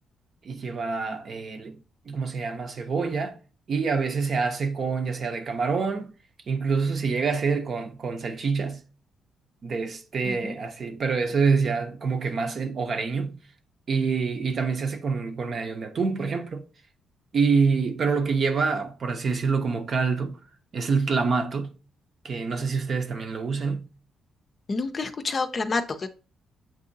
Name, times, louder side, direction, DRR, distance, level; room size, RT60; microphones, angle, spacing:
voice 1, 0.4-3.4 3.7-6.1 6.5-8.8 9.6-13.4 13.9-16.6 17.3-20.4 20.7-21.7 22.2-23.9, right 5 dB, 50° right, 0.7 m, -26 dB
voice 2, 24.7-26.1, left 3 dB, 35° left, 0.5 m, -28 dB
7.4 x 2.7 x 2.6 m
cardioid pair, 90°, 0 cm